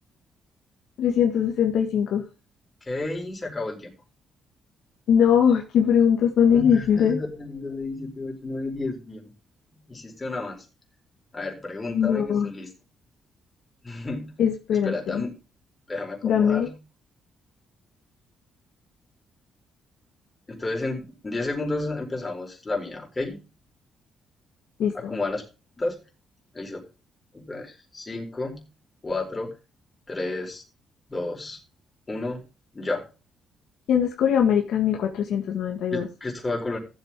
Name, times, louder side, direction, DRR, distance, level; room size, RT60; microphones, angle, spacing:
voice 1, 1.0-2.2 5.1-7.2 11.9-12.5 14.4-15.3 16.2-16.7 24.8-25.2 33.9-36.1, left 8 dB, 75° left, 2 dB, 1.8 m, -21 dB
voice 2, 2.8-3.9 6.5-9.3 9.7-10.6 11.3-12.7 13.8-14.3 14.8-15.4 15.9-16.8 20.5-23.4 24.9-25.4 25.8-26.0 26.5-26.9 27.3-28.6 29.0-29.5 30.1-30.6 31.1-31.6 32.1-32.4 32.7-33.0 35.9-36.8, left 2 dB, 25° left, 0 dB, 4.6 m, -31 dB
15.0 x 7.7 x 3.8 m, 0.31 s
cardioid pair, 90°, 0 cm